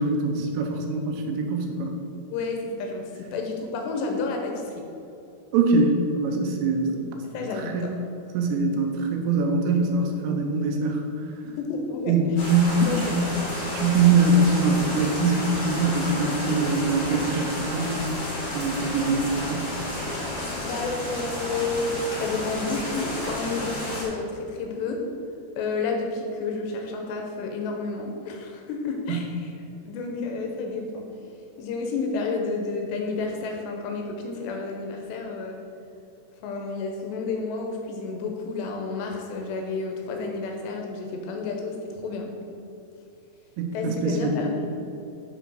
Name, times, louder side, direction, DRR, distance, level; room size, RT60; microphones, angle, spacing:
voice 1, 0.0-1.9 5.5-7.0 7.5-7.8 8.3-11.3 12.1-13.3 13.7-18.1 18.5-19.7 29.1-29.2 43.6-44.4, right 3 dB, 85° right, 2 dB, 3.1 m, -23 dB
voice 2, 2.3-4.8 7.2-7.9 11.5-12.4 12.9-13.2 20.1-25.0 25.6-29.5 29.8-31.1 31.6-35.6 36.4-42.3 43.7-44.7, left 3 dB, 85° left, 2 dB, 2.9 m, -31 dB
sound 1, 12.4-24.0, left 1 dB, 55° left, 0.9 m, -31 dB
8.2 x 4.0 x 6.2 m, 2.7 s
omnidirectional pair, 5.0 m